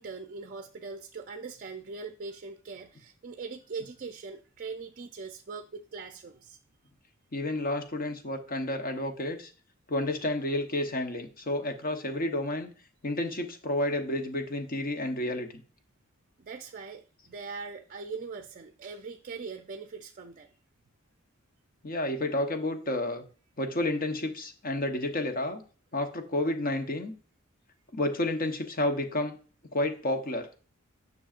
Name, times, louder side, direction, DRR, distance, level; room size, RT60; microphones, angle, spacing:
voice 1, 0.0-6.6 16.4-20.6, right 4 dB, 40° right, 6 dB, 0.5 m, -41 dB
voice 2, 7.3-9.5 9.9-12.7 13.0-15.5 21.8-23.2 23.6-25.6 25.9-27.1 27.9-29.4 29.7-30.5, left 1 dB, 45° left, 6 dB, 1.0 m, -30 dB
10.0 x 6.1 x 2.5 m, 0.38 s
head